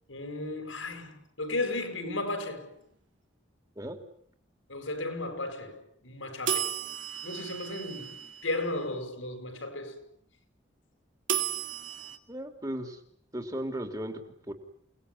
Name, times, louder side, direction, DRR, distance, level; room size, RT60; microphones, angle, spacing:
voice 1, 0.1-2.8 4.7-6.8 7.2-10.0, left 2 dB, 85° left, 6.4 m, -35 dB
sound 1, 6.5-8.7 11.3-12.2, right 9 dB, 75° right, 2.5 m, -33 dB
voice 2, 12.3-13.0 13.3-14.2 14.5-14.6, right 1 dB, 20° right, 3.4 m, -35 dB
29.0 x 20.0 x 9.9 m
head